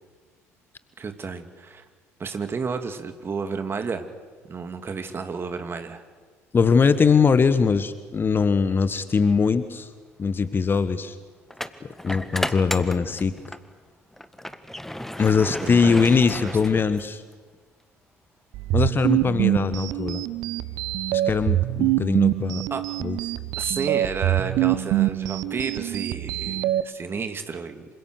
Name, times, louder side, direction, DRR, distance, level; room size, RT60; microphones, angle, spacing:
voice 1, 1.0-1.8 2.2-4.1 4.5-6.0 15.4-16.1 16.4-16.5 22.7-22.9 23.6-27.9, right 5 dB, 30° right, 7 dB, 2.6 m, -31 dB
voice 2, 6.5-9.9 10.2-11.2 11.8-13.4 15.2-17.2 18.7-20.2 21.1-22.6 23.0-23.2, left 5 dB, 25° left, 13 dB, 1.3 m, -21 dB
sound 1, 9.6-9.7 11.5-13.7 14.1-17.3, left 1 dB, 5° left, 1.6 m, -34 dB
sound 2, 18.5-26.8, right 15 dB, 55° right, 1.0 m, -25 dB
27.5 x 25.5 x 6.6 m, 1.5 s
figure-of-eight pair, 60°, 8 cm